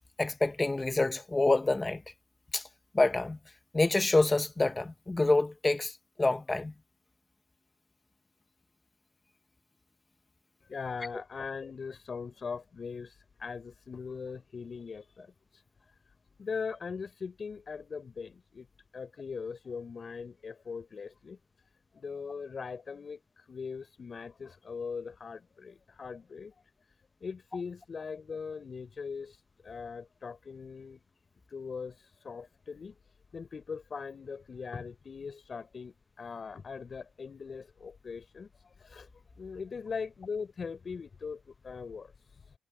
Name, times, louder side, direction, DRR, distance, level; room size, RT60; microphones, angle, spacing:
voice 1, 0.2-2.0 2.5-2.6 2.9-3.4 3.7-5.9 6.2-6.7, left 2 dB, 20° left, 1.3 m, -27 dB
voice 2, 10.6-15.6 16.4-18.7 18.9-21.4 21.9-26.5 27.2-31.0 31.5-33.0 33.3-39.1 39.4-42.5, left 5 dB, 40° left, 6.0 m, -40 dB
cardioid pair, 90°, 0 cm